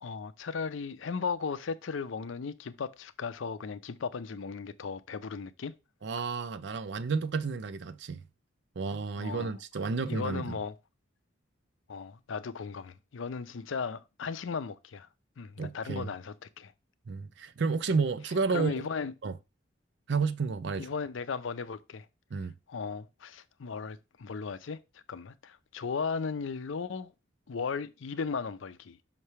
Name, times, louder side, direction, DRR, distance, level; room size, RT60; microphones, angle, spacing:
voice 1, 0.0-5.7 9.2-9.5 10.1-10.7 11.9-15.1 15.4-16.7 18.5-19.1 20.8-22.1 22.7-24.8 25.1-27.1 27.5-29.0, left 5 dB, 80° left, 0.5 m, -36 dB
voice 2, 6.0-8.2 8.8-10.6 15.6-16.1 17.1-18.9 19.2-19.3 20.1-20.9 22.3-22.5, right 4 dB, 60° right, 0.5 m, -31 dB
5.8 x 3.2 x 5.5 m
head